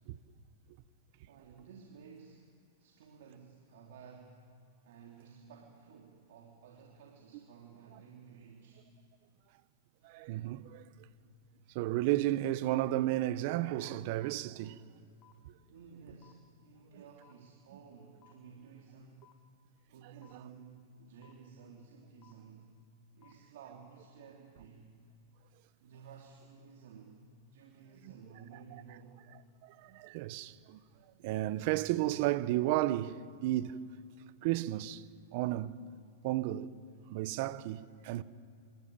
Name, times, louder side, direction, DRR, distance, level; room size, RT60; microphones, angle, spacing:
voice 1, 1.3-2.5 2.8-4.5 4.8-8.9 15.7-19.3 19.9-22.7 23.1-25.0 25.8-27.2 27.5-29.3, right 6 dB, 70° right, 2.9 m, -54 dB
voice 2, 10.0-10.8 11.7-14.8 16.9-17.0 28.0-28.1 29.6-30.8 31.2-33.8 34.4-35.1 35.3-35.8 36.2-36.7 37.1-38.2, right 15 dB, 50° right, 1.0 m, -33 dB
sound 1, 14.2-14.3 15.2-15.3 16.2-16.3 17.2-17.3 18.2-18.3 19.2-19.3 20.2-20.3 21.2-21.3 22.2-22.3 23.2-23.3, left 13 dB, 30° left, 1.5 m, -61 dB
27.5 x 14.5 x 8.9 m
hypercardioid pair, 130°, 0 cm